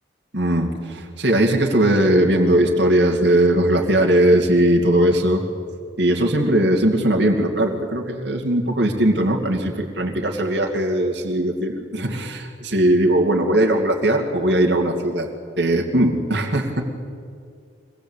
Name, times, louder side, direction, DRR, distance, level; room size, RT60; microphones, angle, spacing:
voice 1, 0.3-5.4 6.0-15.3 15.6-16.8, right 1 dB, 60° right, 1 dB, 2.6 m, -19 dB
24.5 x 20.0 x 8.4 m, 2.4 s
head